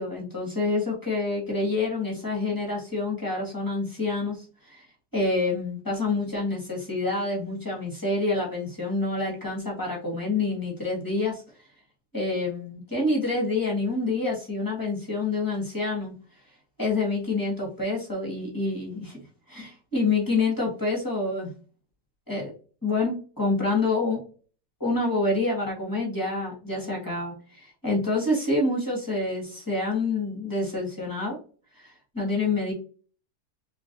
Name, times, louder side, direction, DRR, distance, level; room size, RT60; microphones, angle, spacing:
voice 1, 0.0-4.8 5.1-11.4 12.1-16.1 16.8-19.2 19.5-21.5 22.3-22.5 22.8-24.2 24.8-31.4 31.8-32.7, left 3 dB, 10° left, -2 dB, 1.7 m, -27 dB
4.8 x 3.0 x 2.6 m, 0.38 s
omnidirectional pair, 1.8 m